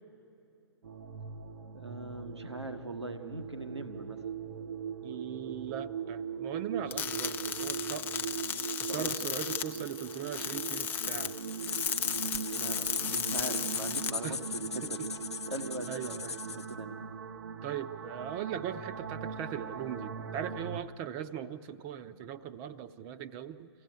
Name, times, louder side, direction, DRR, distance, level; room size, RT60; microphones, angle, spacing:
sound 1, 0.8-20.8, right 7 dB, 60° right, 0.8 m, -40 dB
voice 1, 1.7-4.2 8.9-9.4 12.5-15.1 15.5-16.1 16.5-17.0, right 2 dB, 85° right, 6 dB, 1.3 m, -40 dB
voice 2, 5.0-8.1 8.8-11.3 14.2-14.4 14.8-15.1 15.9-16.4 17.6-23.7, right 9 dB, 30° right, 11 dB, 0.7 m, -39 dB
sound 2, 6.9-14.1, left 8 dB, 15° left, 0.5 m, -35 dB
sound 3, 11.5-16.7, left 5 dB, 80° left, 0.7 m, -39 dB
24.5 x 16.0 x 9.1 m, 2.8 s
figure-of-eight pair, 125°, 14 cm